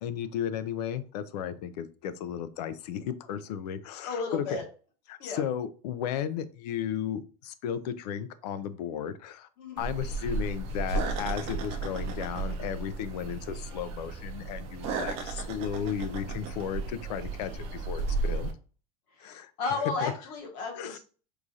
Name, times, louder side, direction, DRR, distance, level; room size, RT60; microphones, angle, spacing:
voice 1, 0.0-4.4 5.1-9.5 9.8-18.5 19.2-19.5 20.0-20.1 20.7-21.0, left 9 dB, 80° left, 13 dB, 0.5 m, -34 dB
voice 2, 4.1-4.6 5.2-5.4 9.6-9.8 19.2-21.0, left 4 dB, 45° left, 1 dB, 1.2 m, -33 dB
sound 1, 9.8-18.5, right 3 dB, 30° right, 0.5 m, -34 dB
4.7 x 2.4 x 2.7 m, 0.39 s
supercardioid pair, 175°, 20 cm